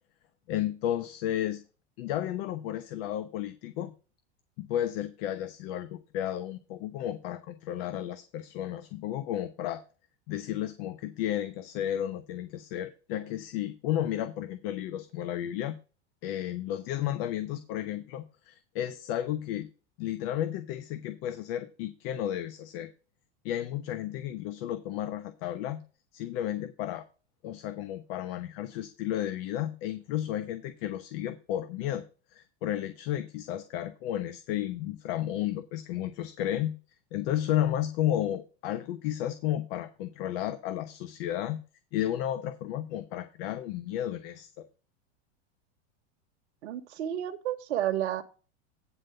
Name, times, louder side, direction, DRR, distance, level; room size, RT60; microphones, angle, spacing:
voice 1, 0.5-1.6 2.0-3.9 4.6-9.8 10.3-15.8 16.2-19.7 20.0-22.9 23.4-25.8 26.1-27.0 27.4-32.0 32.3-36.8 37.1-41.6 41.9-44.7, left 12 dB, 60° left, 10 dB, 1.0 m, -33 dB
voice 2, 46.6-48.2, right 11 dB, 80° right, 6 dB, 1.1 m, -31 dB
9.7 x 4.0 x 6.7 m, 0.34 s
supercardioid pair, 125°, 33 cm